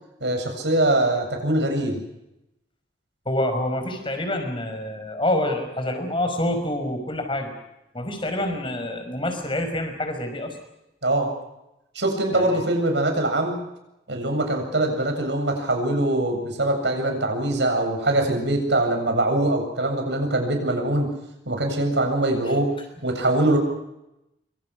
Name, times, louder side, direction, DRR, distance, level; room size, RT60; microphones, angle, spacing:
voice 1, 0.2-2.0 11.0-11.3 11.9-13.6 14.1-21.1 21.5-22.7 23.0-23.6, right 1 dB, 85° right, 4 dB, 7.7 m, -23 dB
voice 2, 3.3-7.5 7.9-10.6 12.3-12.6, left 1 dB, 30° left, 6 dB, 5.6 m, -27 dB
26.0 x 25.5 x 6.4 m, 0.89 s
head